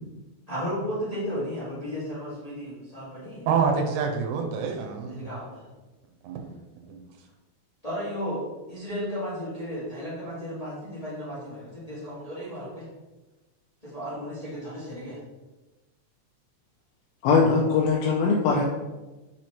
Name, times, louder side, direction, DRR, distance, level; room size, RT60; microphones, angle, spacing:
voice 1, 0.5-3.5 5.1-5.6 7.8-12.9 13.8-15.2, equal, 15° left, -9 dB, 1.8 m, -34 dB
voice 2, 3.5-5.4 6.2-6.5 6.9-7.0, right 5 dB, 90° right, 4 dB, 2.3 m, -27 dB
voice 3, 17.2-18.6, left 4 dB, 75° left, -2 dB, 1.7 m, -21 dB
5.3 x 4.4 x 4.5 m, 1.1 s
omnidirectional pair, 3.4 m